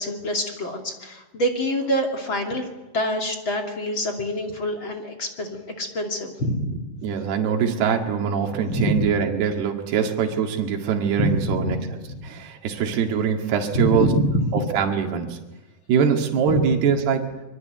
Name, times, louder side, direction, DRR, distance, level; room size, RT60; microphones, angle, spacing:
voice 1, 0.0-2.7 2.9-6.9 8.7-9.1 11.2-11.8 12.1-12.2 13.7-14.6 16.5-16.7, equal, 35° left, 3 dB, 2.9 m, -25 dB
voice 2, 7.0-11.8 12.2-14.1 14.5-15.4 15.9-17.3, right 7 dB, 85° right, 2 dB, 4.1 m, -23 dB
25.0 x 23.5 x 9.3 m, 1.1 s
omnidirectional pair, 4.5 m